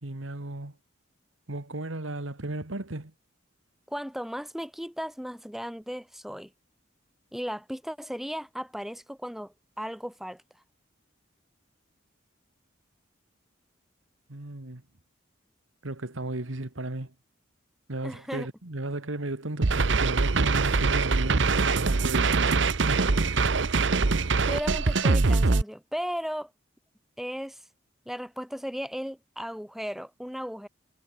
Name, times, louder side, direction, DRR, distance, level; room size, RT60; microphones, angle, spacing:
voice 1, 0.0-0.7 1.5-3.1 14.3-14.8 15.8-17.1 17.9-23.1, right 2 dB, 85° right, 2.0 m, -35 dB
voice 2, 3.9-6.5 7.3-10.4 18.0-18.5 24.5-26.5 27.2-27.6 28.1-30.7, equal, ahead, 4.6 m, -36 dB
sound 1, 19.6-25.6, right 4 dB, 70° right, 0.9 m, -23 dB
head